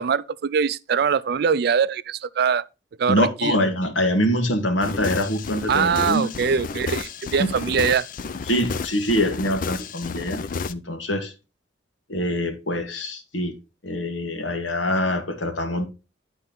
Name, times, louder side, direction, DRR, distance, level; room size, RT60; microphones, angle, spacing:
voice 1, 0.0-2.6 3.0-3.5 5.7-8.1, right 6 dB, 55° right, 0.3 m, -22 dB
voice 2, 3.1-6.3 8.5-10.4 10.7-11.3 12.1-13.5 13.8-15.9, left 1 dB, 90° left, 1.5 m, -24 dB
sound 1, 4.8-10.7, left 4 dB, 45° left, 0.4 m, -31 dB
10.5 x 4.3 x 3.9 m
head